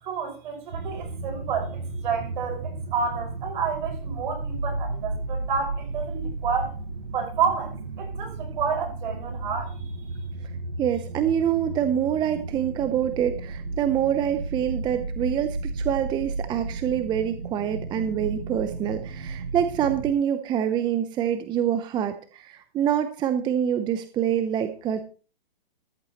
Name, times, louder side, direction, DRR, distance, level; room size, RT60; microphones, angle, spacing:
voice 1, 0.0-6.8 7.1-9.8, right 6 dB, 55° right, 5.7 m, -30 dB
sound 1, 0.7-20.1, right 3 dB, 90° right, 1.3 m, -34 dB
voice 2, 10.8-25.0, right 9 dB, 15° right, 0.8 m, -26 dB
14.5 x 13.5 x 3.1 m
hypercardioid pair, 135°, 29 cm